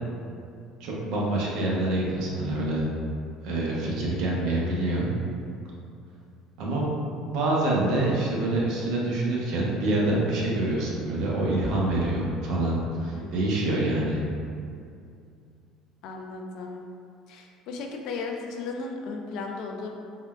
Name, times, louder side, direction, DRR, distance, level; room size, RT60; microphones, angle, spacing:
voice 1, 0.8-2.8 3.4-5.1 6.6-6.9 7.3-14.2, right 2 dB, 65° right, -4 dB, 0.6 m, -26 dB
voice 2, 3.9-4.3 13.1-13.7 16.0-16.8 17.3-19.9, left 4 dB, 60° left, 2 dB, 0.3 m, -36 dB
3.7 x 2.1 x 2.2 m, 2.4 s
cardioid pair, 140°, 0 cm